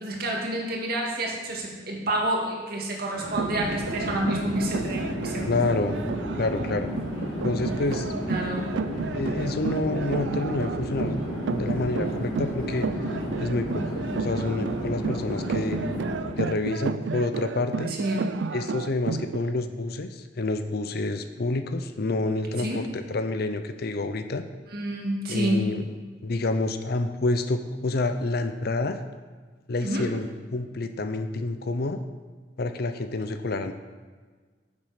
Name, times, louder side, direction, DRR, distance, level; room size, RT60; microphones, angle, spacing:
voice 1, 0.0-5.5 7.1-7.4 8.3-8.7 17.9-18.3 22.6-22.8 24.7-25.7 29.8-30.1, right 1 dB, 55° right, -1 dB, 2.1 m, -29 dB
Chatter / Fixed-wing aircraft airplane, 3.1-16.5, equal, 80° left, 3.3 m, -32 dB
sound 1, 3.2-19.5, right 5 dB, 85° right, 0.4 m, -33 dB
voice 2, 5.5-6.0 6.4-6.9 7.4-8.1 9.1-11.2 11.5-12.9 13.4-15.8 16.4-17.9 18.5-24.4 25.3-25.8 26.2-29.0 29.7-32.0 32.6-33.7, left 2 dB, 60° left, 9 dB, 0.6 m, -28 dB
9.7 x 7.3 x 5.0 m, 1.4 s
head